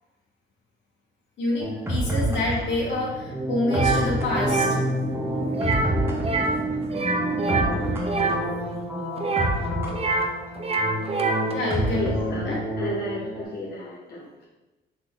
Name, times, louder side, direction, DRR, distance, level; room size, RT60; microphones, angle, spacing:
voice 1, 1.4-4.7 11.5-12.1 12.4-12.6, left 2 dB, 70° left, -3 dB, 1.5 m, -27 dB
sound 1, 1.6-13.4, equal, 10° right, 1.1 m, -28 dB
sound 2, 2.7-7.9, right 2 dB, 10° left, 1.2 m, -33 dB
sound 3, 3.7-4.0 4.4-4.8 5.5-5.9 6.2-6.6 6.9-8.4 9.2-10.3 10.6-11.5, right 3 dB, 30° right, 0.5 m, -25 dB
voice 2, 11.8-14.5, equal, 50° left, -5 dB, 1.0 m, -33 dB
4.0 x 3.7 x 3.4 m, 1.0 s
cardioid pair, 90°, 20 cm